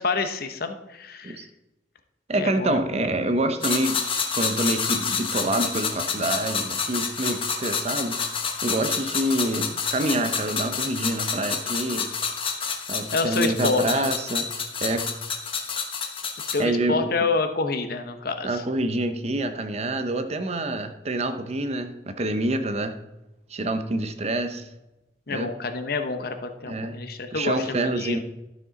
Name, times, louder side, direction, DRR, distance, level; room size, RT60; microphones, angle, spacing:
voice 1, 0.0-1.4 2.4-3.1 13.1-13.9 16.5-18.6 25.3-28.2, left 3 dB, 55° left, 7 dB, 0.9 m, -28 dB
voice 2, 2.3-4.0 4.3-8.2 8.6-12.1 12.9-14.4 14.8-15.0 16.6-17.1 18.4-22.9 23.5-24.7 25.3-25.5 26.7-27.0 27.3-28.2, right 1 dB, 35° right, 8 dB, 0.7 m, -26 dB
sound 1, 3.6-16.6, left 5 dB, 30° left, 1.1 m, -28 dB
12.5 x 6.3 x 4.0 m, 0.97 s
head